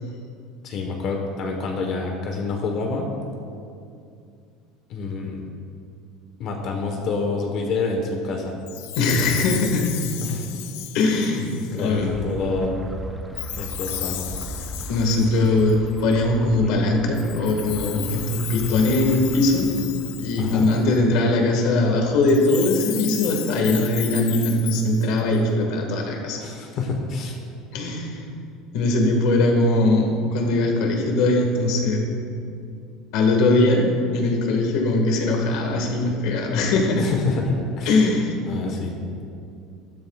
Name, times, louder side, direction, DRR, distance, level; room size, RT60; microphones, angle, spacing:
voice 1, 0.6-3.2 4.9-5.4 6.4-8.6 10.2-10.5 11.5-12.7 13.6-14.3 20.4-20.7 26.1-27.4 37.0-38.0 38.5-39.0, left 3 dB, 40° left, 2 dB, 1.2 m, -27 dB
Chime, 8.7-12.0 13.4-16.2 17.1-21.0 22.2-25.4, left 13 dB, 80° left, 0.7 m, -34 dB
voice 2, 9.0-9.9 10.9-11.5 11.7-12.1 14.9-19.7 20.2-26.4 27.7-28.2 28.7-32.1 33.1-37.0 37.9-38.3, left 2 dB, 60° left, 1 dB, 1.7 m, -21 dB
sound 1, 12.0-20.6, right 1 dB, 10° right, 0.7 m, -38 dB
13.0 x 12.0 x 2.4 m, 2.5 s
cardioid pair, 175°, 0 cm